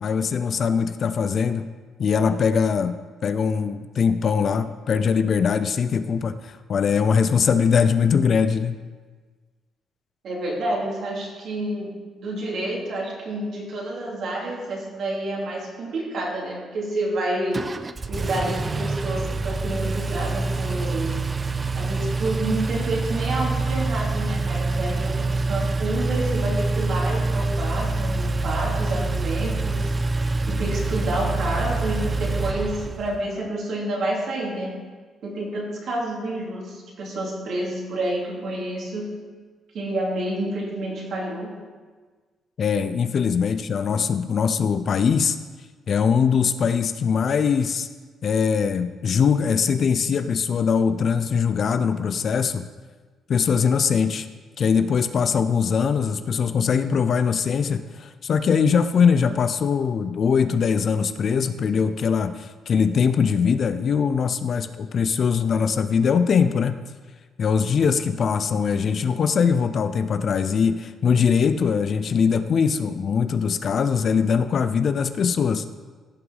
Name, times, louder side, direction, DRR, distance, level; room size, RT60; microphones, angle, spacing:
voice 1, 0.0-1.6 2.0-8.8 42.6-45.4 45.9-47.9 48.2-52.7 53.3-54.3 54.6-66.8 67.4-75.6, left 6 dB, 45° left, 11 dB, 0.4 m, -22 dB
voice 2, 10.2-17.6 18.1-21.2 21.8-29.9 30.5-34.8 35.2-39.2 39.7-41.6, right 1 dB, 60° right, -3 dB, 2.6 m, -29 dB
Engine, 17.5-33.2, right 3 dB, 20° right, 0.3 m, -26 dB
16.0 x 5.8 x 4.0 m, 1.4 s
cardioid pair, 145°, 0 cm